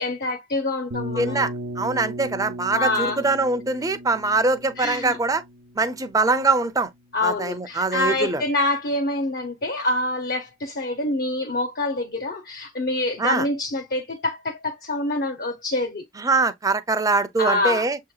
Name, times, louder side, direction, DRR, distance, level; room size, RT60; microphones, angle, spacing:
voice 1, 0.0-1.5 2.7-3.2 4.8-5.2 7.1-16.0 17.4-17.8, left 2 dB, 50° left, 0.6 m, -26 dB
sound 1, 0.9-6.7, right 1 dB, 85° right, 0.7 m, -36 dB
voice 2, 1.2-5.4 5.8-6.9 7.2-8.4 13.2-13.5 16.2-18.0, right 3 dB, 20° right, 0.5 m, -23 dB
7.0 x 2.8 x 2.3 m
head